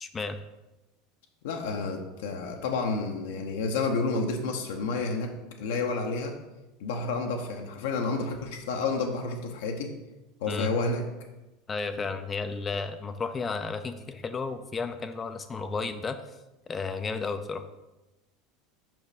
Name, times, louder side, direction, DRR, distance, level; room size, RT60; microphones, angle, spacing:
voice 1, 0.0-0.4 10.5-10.7 11.7-16.2 16.7-17.6, left 4 dB, 20° left, 9 dB, 0.4 m, -33 dB
voice 2, 1.4-6.3 6.8-9.9 10.4-11.0, left 3 dB, 60° left, 3 dB, 0.6 m, -30 dB
5.9 x 5.4 x 3.4 m, 1.0 s
figure-of-eight pair, 75°, 0 cm